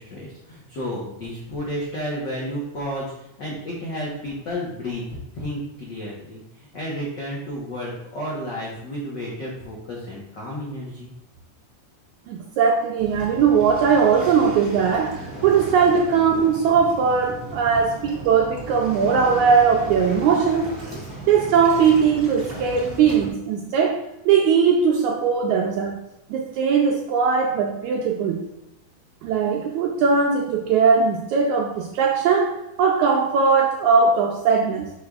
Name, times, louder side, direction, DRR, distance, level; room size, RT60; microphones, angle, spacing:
voice 1, 0.0-11.1, equal, 75° left, -5 dB, 1.0 m, -32 dB
voice 2, 12.3-20.7 21.3-26.0 26.3-28.4 29.2-34.9, right 6 dB, 80° right, 1 dB, 1.7 m, -19 dB
Waves surf, 13.0-23.3, right 1 dB, 25° right, 1.4 m, -36 dB
10.5 x 4.7 x 2.4 m, 0.90 s
omnidirectional pair, 3.9 m